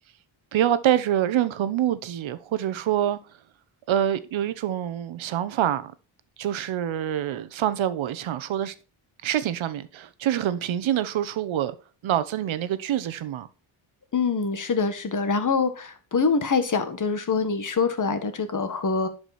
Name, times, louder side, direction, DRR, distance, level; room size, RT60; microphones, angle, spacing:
voice 1, 0.5-3.2 3.9-5.9 6.4-8.7 9.2-11.7 12.0-13.5, right 11 dB, 70° right, 1.0 m, -26 dB
voice 2, 14.1-19.1, left 5 dB, 40° left, 1.6 m, -25 dB
11.0 x 5.1 x 4.2 m
cardioid pair, 90°, 49 cm